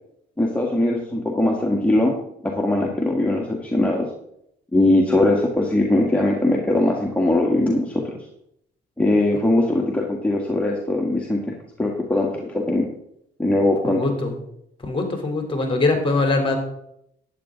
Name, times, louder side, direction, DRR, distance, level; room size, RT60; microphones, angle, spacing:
voice 1, 0.4-2.1 2.4-4.1 4.7-8.1 9.0-12.9 13.4-14.0, left 1 dB, 5° left, -1 dB, 1.8 m, -20 dB
voice 2, 13.9-14.3 14.8-16.6, left 3 dB, 25° left, 3 dB, 3.3 m, -22 dB
12.0 x 9.6 x 3.8 m, 0.75 s
cardioid pair, 90°, 20 cm